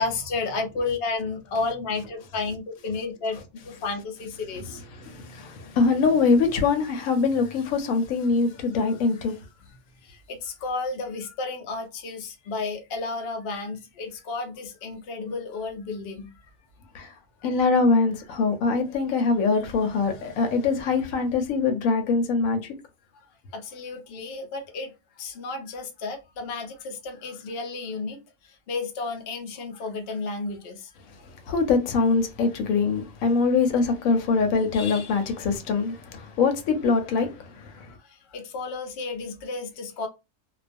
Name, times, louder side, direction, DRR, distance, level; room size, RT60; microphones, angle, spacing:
voice 1, 0.0-4.8 8.2-9.2 9.6-16.3 23.1-23.3 23.5-30.9 38.0-40.1, left 3 dB, 55° left, 0.8 m, -32 dB
voice 2, 5.1-9.4 16.9-17.1 17.4-22.6 31.5-35.9 36.4-37.3, left 4 dB, 90° left, 1.0 m, -23 dB
2.3 x 2.3 x 2.5 m
omnidirectional pair, 1.4 m